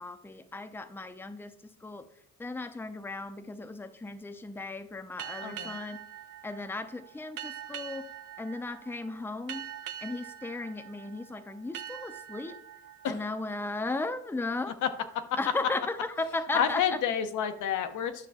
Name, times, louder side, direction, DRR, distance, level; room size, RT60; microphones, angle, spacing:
voice 1, 0.0-2.1 2.4-6.0 6.4-8.1 8.4-9.6 10.0-12.6 13.1-14.8 15.4-16.8, left 2 dB, 5° left, 9 dB, 0.6 m, -36 dB
sound 1, 5.2-14.5, right 10 dB, 80° right, 0.6 m, -44 dB
voice 2, 5.4-5.8 13.0-13.2 14.8-14.9 16.5-18.3, left 8 dB, 80° left, 8 dB, 0.9 m, -29 dB
10.5 x 6.0 x 3.5 m, 0.72 s
cardioid pair, 90°, 30 cm